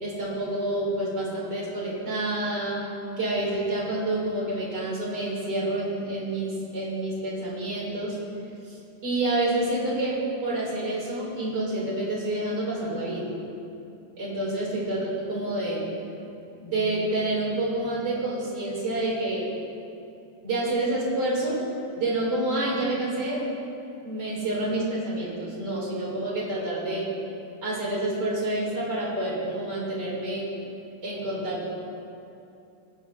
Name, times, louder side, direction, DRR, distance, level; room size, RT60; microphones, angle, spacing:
voice 1, 0.0-2.8 3.2-8.2 8.7-8.8 9.0-13.3 14.2-15.9 16.6-19.5 20.4-21.6 22.0-23.5 24.0-27.1 27.6-30.5 31.0-31.7, right 1 dB, 75° right, -6 dB, 3.6 m, -28 dB
20.0 x 9.8 x 2.7 m, 2.7 s
omnidirectional pair, 1.9 m